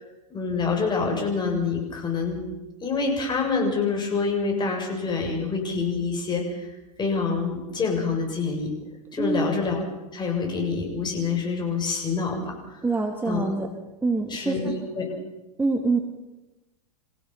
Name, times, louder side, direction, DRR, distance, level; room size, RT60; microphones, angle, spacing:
voice 1, 0.3-2.4 2.8-6.7 7.0-8.7 9.1-9.8 10.1-12.8 13.3-13.4 14.3-14.7 15.0-15.1, left 4 dB, 20° left, 1 dB, 7.2 m, -26 dB
voice 2, 9.2-9.5 12.8-13.7 14.0-14.6 15.6-16.0, right 3 dB, 10° right, 3 dB, 1.9 m, -25 dB
28.5 x 16.5 x 5.8 m, 1.0 s
hypercardioid pair, 110°, 20 cm